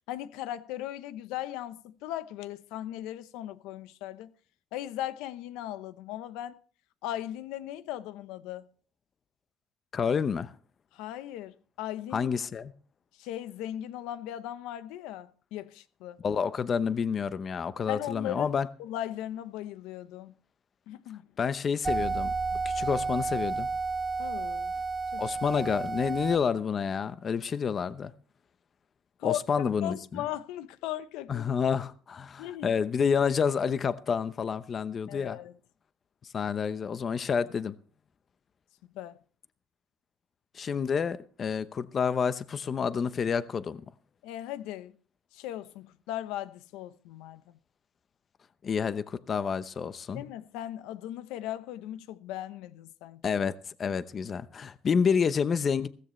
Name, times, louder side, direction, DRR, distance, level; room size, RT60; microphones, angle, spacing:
voice 1, 0.1-4.3 4.7-6.6 7.0-8.7 10.9-12.5 13.2-16.2 17.9-20.3 20.9-21.3 22.5-22.6 24.2-24.7 25.1-25.2 29.2-29.4 29.8-31.4 32.4-32.7 35.1-35.6 38.9-39.2 44.2-44.9 45.3-47.6 50.1-53.2, left 12 dB, 90° left, 0.9 m, -38 dB
voice 2, 9.9-10.5 12.1-12.7 16.2-18.7 21.4-22.3 22.6-23.7 25.2-28.1 29.2-30.0 31.3-35.4 36.3-37.7 40.5-43.8 48.6-50.2 53.2-53.5 53.8-55.9, left 6 dB, 35° left, 0.8 m, -29 dB
sound 1, 21.8-26.4, right 4 dB, 15° right, 1.2 m, -31 dB
16.0 x 14.5 x 3.2 m
cardioid pair, 130°, 0 cm